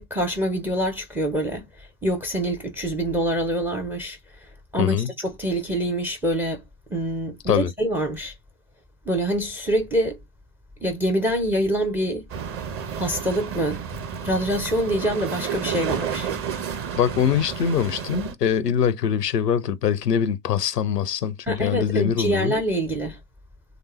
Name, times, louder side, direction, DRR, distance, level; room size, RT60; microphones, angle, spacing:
voice 1, 0.0-4.2 4.7-6.6 6.9-8.3 9.1-10.2 10.8-12.3 13.0-13.8 14.2-16.3 21.5-23.2, right 1 dB, 5° right, 0.3 m, -25 dB
voice 2, 4.8-5.1 7.5-7.7 17.0-22.5, left 8 dB, 80° left, 0.5 m, -23 dB
sound 1, 12.3-18.3, right 7 dB, 30° right, 0.7 m, -31 dB
3.2 x 2.9 x 2.9 m
figure-of-eight pair, 75°, 48 cm